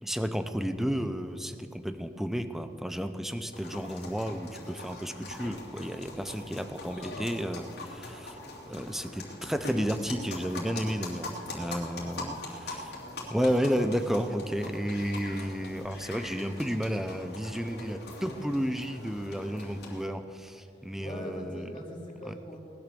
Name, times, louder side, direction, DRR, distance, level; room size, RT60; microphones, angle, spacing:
voice 1, 0.0-12.9 13.3-21.7 22.2-22.4, equal, ahead, 9 dB, 0.6 m, -32 dB
sound 1, 3.5-20.1, left 2 dB, 60° left, 2.8 m, -42 dB
voice 2, 20.6-22.6, equal, 25° left, -3 dB, 3.0 m, -42 dB
19.0 x 10.0 x 6.9 m, 2.7 s
head